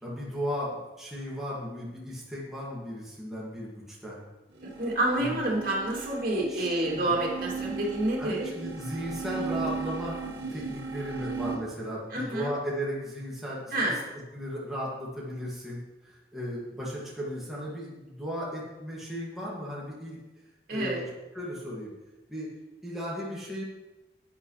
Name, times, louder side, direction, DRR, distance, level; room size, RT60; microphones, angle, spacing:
voice 1, 0.0-4.2 5.2-5.4 6.5-7.1 8.2-10.2 10.5-13.9 14.3-20.2 20.7-21.1 21.3-21.9 22.3-22.5 22.8-23.6, equal, ahead, -7 dB, 2.1 m, -36 dB
sound 1, 4.5-11.6, right 5 dB, 80° right, 1.7 m, -37 dB
voice 2, 4.6-8.4 12.1-12.5 13.7-14.0 20.7-21.0, right 1 dB, 55° right, -3 dB, 2.6 m, -28 dB
11.5 x 8.8 x 3.3 m, 1.1 s
head